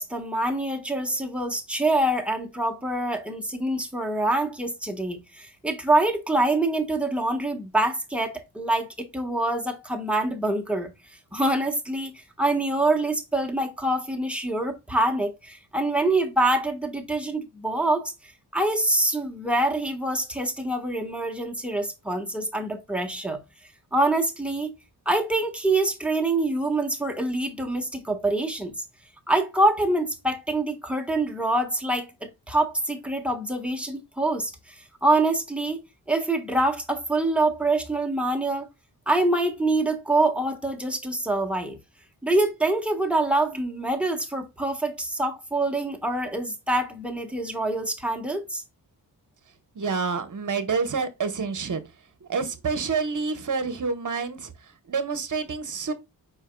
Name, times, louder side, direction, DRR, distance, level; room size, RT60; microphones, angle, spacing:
voice 1, 0.0-10.9 11.3-12.1 12.4-18.1 18.5-23.4 23.9-24.7 25.0-28.7 29.3-35.8 36.1-38.7 39.1-41.8 42.2-48.6, right 2 dB, 5° right, 1.4 m, -25 dB
voice 2, 49.7-51.8 52.2-54.5 54.9-55.9, right 5 dB, 45° right, 1.2 m, -28 dB
5.1 x 4.6 x 2.3 m
cardioid pair, 65°, 41 cm